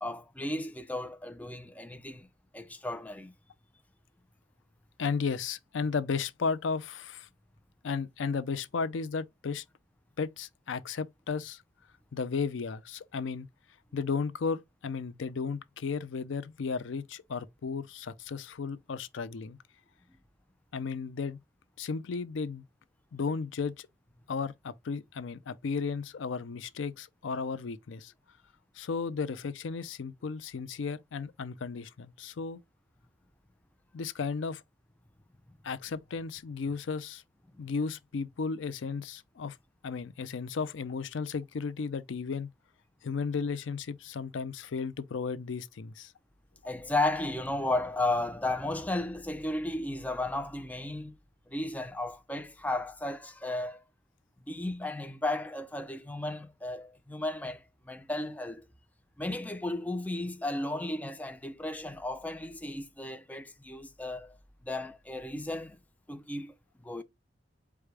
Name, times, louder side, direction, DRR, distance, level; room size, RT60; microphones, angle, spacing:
voice 1, 0.0-2.3 2.5-3.3 46.6-51.1 51.5-53.8 54.5-58.6 59.2-64.4 64.6-65.8 66.1-66.5 66.8-67.0, left 2 dB, 10° left, 0.4 m, -34 dB
voice 2, 5.0-7.3 7.8-9.6 10.2-11.6 12.1-13.5 13.9-19.6 20.7-21.4 21.8-22.6 23.1-23.9 24.3-28.1 28.7-32.6 33.9-34.6 35.6-37.2 37.6-39.6 39.8-42.5 43.0-46.1, left 5 dB, 85° left, 0.5 m, -34 dB
4.9 x 2.2 x 4.6 m
head